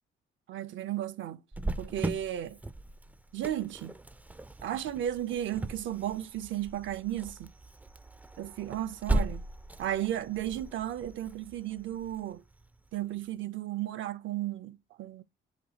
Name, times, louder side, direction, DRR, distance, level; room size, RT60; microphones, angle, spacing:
voice 1, 0.5-1.4 1.8-2.6 3.3-4.0 4.6-7.5 8.4-9.4 9.8-12.4 12.9-15.2, right 12 dB, 75° right, 0.6 m, -34 dB
Cricket, 1.5-13.0, right 2 dB, 10° right, 0.3 m, -38 dB
5.3 x 2.3 x 3.9 m
cardioid pair, 90°, 20 cm